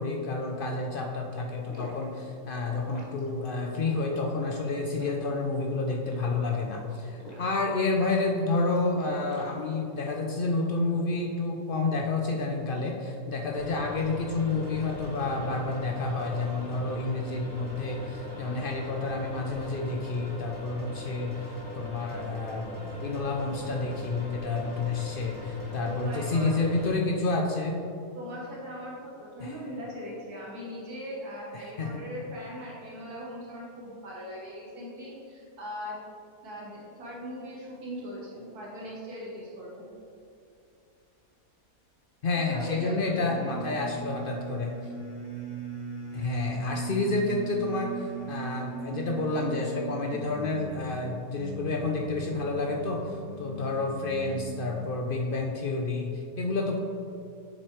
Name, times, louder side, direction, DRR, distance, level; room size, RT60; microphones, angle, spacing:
voice 1, 0.0-27.8 29.4-29.6 31.6-32.0 42.2-44.7 46.1-56.8, left 3 dB, 75° left, 1 dB, 0.4 m, -30 dB
sound 1, 1.4-10.2, equal, 30° left, 1.0 m, -47 dB
sound 2, 13.5-26.9, left 2 dB, 15° left, 1.3 m, -40 dB
voice 2, 25.8-26.5 28.2-36.0 36.4-39.9 42.3-43.6, equal, 75° right, -5 dB, 1.8 m, -40 dB
sound 3, 43.1-55.0, right 4 dB, 50° left, 2.3 m, -39 dB
7.5 x 6.8 x 3.1 m, 2.6 s
omnidirectional pair, 1.7 m